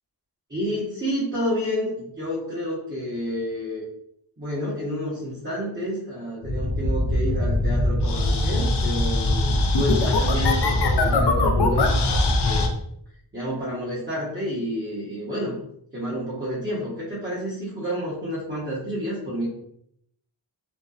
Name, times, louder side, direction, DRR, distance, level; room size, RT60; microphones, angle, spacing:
voice 1, 0.5-3.8 4.4-12.7 13.3-15.6 15.9-19.5, equal, 25° right, -8 dB, 0.8 m, -30 dB
sound 1, 6.4-12.7, left 2 dB, 60° left, 0.5 m, -21 dB
2.7 x 2.1 x 2.3 m, 0.72 s
wide cardioid pair, 60°, 48 cm